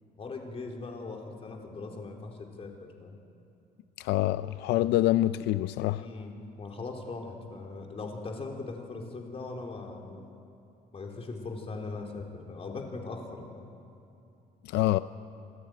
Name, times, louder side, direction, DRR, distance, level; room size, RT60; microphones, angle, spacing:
voice 1, 0.2-3.2 5.8-10.3 10.9-13.7, left 3 dB, 35° left, 2 dB, 3.8 m, -40 dB
voice 2, 4.0-6.0 14.6-15.0, left 15 dB, 85° left, 14 dB, 0.5 m, -26 dB
26.0 x 16.0 x 9.3 m, 2.6 s
cardioid pair, 110°, 17 cm